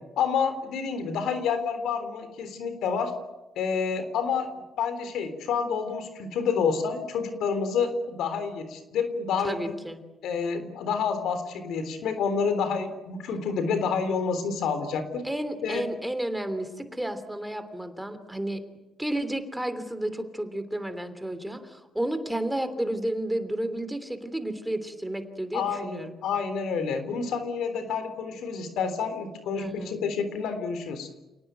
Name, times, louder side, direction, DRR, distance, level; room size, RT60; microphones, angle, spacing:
voice 1, 0.2-3.1 3.6-4.5 4.8-9.7 10.2-15.2 15.6-15.8 25.5-31.1, left 6 dB, 80° left, 10 dB, 3.6 m, -28 dB
voice 2, 9.4-10.0 15.2-18.6 19.0-26.1 29.6-29.9, right 1 dB, 5° right, 10 dB, 3.1 m, -32 dB
29.0 x 18.5 x 9.2 m, 1.1 s
cardioid pair, 90°, 0 cm